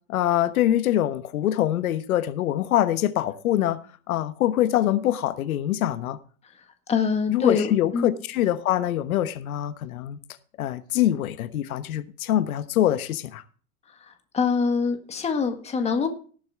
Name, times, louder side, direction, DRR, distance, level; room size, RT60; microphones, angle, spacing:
voice 1, 0.1-3.8 4.1-6.2 7.3-10.2 10.6-13.4, left 12 dB, 85° left, 1.2 m, -24 dB
voice 2, 6.9-8.2 14.0-16.1, left 5 dB, 15° left, 1.6 m, -24 dB
17.5 x 8.0 x 3.5 m
supercardioid pair, 150°, 41 cm